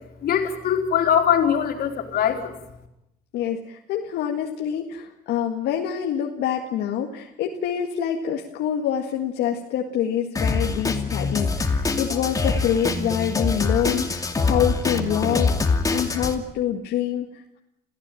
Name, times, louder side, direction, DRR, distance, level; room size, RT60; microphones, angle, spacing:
voice 1, 0.2-2.5, left 8 dB, 65° left, 4 dB, 3.7 m, -21 dB
voice 2, 3.3-17.6, left 9 dB, 80° left, 2 dB, 1.9 m, -26 dB
Drum kit, 10.4-16.3, left 3 dB, 20° left, 2.5 m, -24 dB
27.0 x 15.5 x 9.1 m, 0.84 s
cardioid pair, 110°, 17 cm